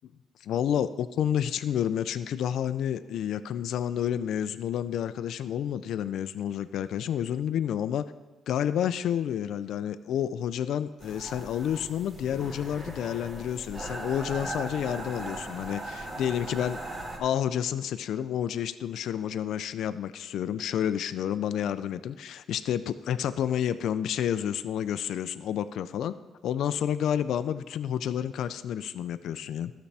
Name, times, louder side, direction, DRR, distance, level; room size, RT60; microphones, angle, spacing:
voice 1, 0.4-8.0 8.5-16.8 17.2-26.2 26.4-29.7, left 9 dB, 75° left, 12 dB, 0.3 m, -30 dB
sound 1, 11.0-17.2, right 1 dB, 35° right, 1.7 m, -39 dB
12.5 x 6.9 x 3.4 m, 1.2 s
cardioid pair, 90°, 0 cm